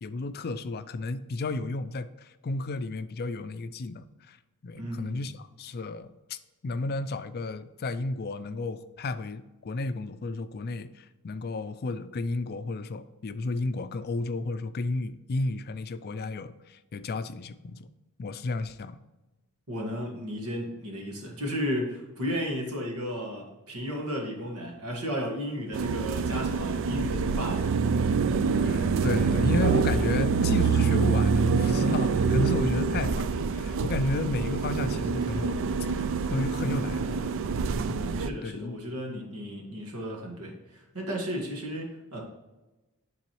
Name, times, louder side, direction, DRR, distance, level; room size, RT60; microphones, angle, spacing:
voice 1, 0.0-4.4 4.6-5.3 5.6-6.4 6.6-17.9 18.2-19.0 28.6-35.6 35.9-37.3 37.9-38.8, left 2 dB, 45° left, 12 dB, 0.4 m, -32 dB
voice 2, 4.8-5.3 19.7-27.7 38.2-42.2, equal, 80° right, 0 dB, 1.7 m, -34 dB
sound 1, 25.7-38.3, right 5 dB, 60° right, 0.3 m, -26 dB
10.5 x 3.9 x 3.0 m, 1.1 s
head